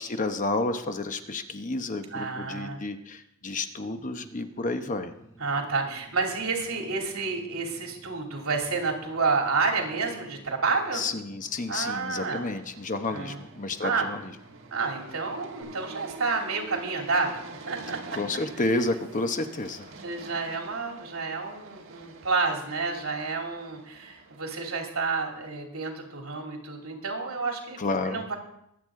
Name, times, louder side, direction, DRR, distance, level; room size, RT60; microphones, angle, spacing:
voice 1, 0.0-5.1 10.9-14.3 18.1-19.9 27.8-28.3, left 2 dB, 40° left, 7 dB, 0.9 m, -30 dB
voice 2, 2.1-2.8 5.4-11.0 11.7-12.6 13.1-13.4 13.8-14.1 14.7-18.2 20.0-28.3, right 4 dB, 85° right, 1 dB, 2.8 m, -30 dB
sound 1, 3.8-15.6, right 2 dB, 20° left, 4.8 m, -56 dB
sound 2, 11.4-24.5, right 3 dB, 65° right, 1.4 m, -46 dB
22.5 x 8.2 x 3.7 m, 0.77 s
head